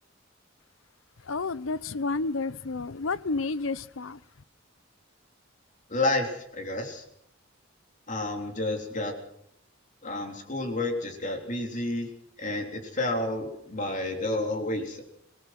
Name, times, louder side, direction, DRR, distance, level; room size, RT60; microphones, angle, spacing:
voice 1, 1.2-4.2, left 3 dB, 75° left, 0.8 m, -30 dB
voice 2, 5.9-7.0 8.1-9.1 10.0-12.1 12.4-15.0, left 2 dB, 40° left, 3.4 m, -30 dB
25.5 x 18.5 x 6.0 m
head